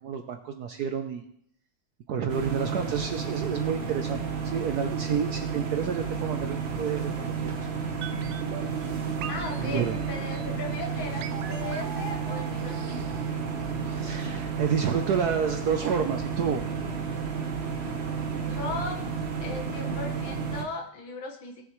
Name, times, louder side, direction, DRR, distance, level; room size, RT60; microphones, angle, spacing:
voice 1, 0.0-1.2 2.1-7.6 9.5-10.0 13.8-16.6, right 7 dB, 70° right, 6 dB, 1.0 m, -29 dB
sound 1, 2.3-20.6, right 5 dB, 40° right, 1.0 m, -32 dB
sound 2, 8.0-14.1 14.3-14.4, right 9 dB, 90° right, 1.5 m, -42 dB
voice 2, 9.3-13.0 18.4-19.0 19.4-21.6, left 3 dB, 75° left, 2 dB, 2.2 m, -37 dB
17.5 x 6.9 x 3.1 m, 0.69 s
omnidirectional pair, 2.3 m